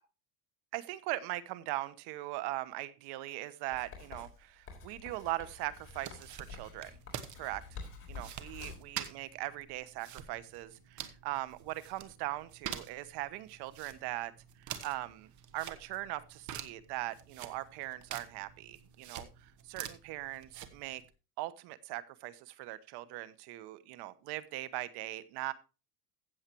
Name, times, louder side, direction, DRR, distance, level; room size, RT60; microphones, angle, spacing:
voice 1, 0.7-7.0 7.4-7.6 8.1-14.3 14.6-21.0 21.4-25.5, right 16 dB, 60° right, 16 dB, 1.0 m, -40 dB
Writing, 3.7-8.9, left 4 dB, 30° left, 3.9 m, -49 dB
sound 1, 5.9-21.1, right 10 dB, 40° right, 1.2 m, -47 dB
15.5 x 7.4 x 3.0 m, 0.30 s
supercardioid pair, 125°, 45 cm